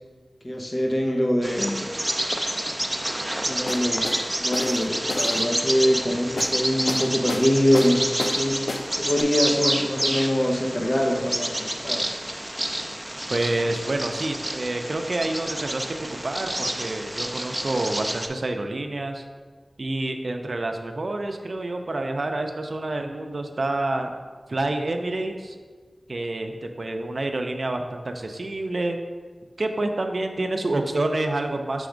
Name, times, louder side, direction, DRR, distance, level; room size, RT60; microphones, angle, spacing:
voice 1, 0.4-2.0 3.4-8.6 9.0-12.2, equal, 45° left, 1 dB, 0.8 m, -24 dB
Bird vocalization bird call bird song, 1.4-18.3, right 1 dB, 15° right, 0.5 m, -29 dB
sound 1, 3.7-4.2 4.5-5.4 6.4-6.6 6.9-7.5 7.7-8.4 8.7-8.9 9.2-9.3, left 2 dB, 85° left, 0.4 m, -30 dB
voice 2, 13.3-19.2 19.8-24.1 24.5-25.6 26.1-29.0 29.6-31.9, right 2 dB, 65° right, 5 dB, 0.5 m, -28 dB
6.2 x 3.4 x 5.0 m, 1.5 s
wide cardioid pair, 60°, 0 cm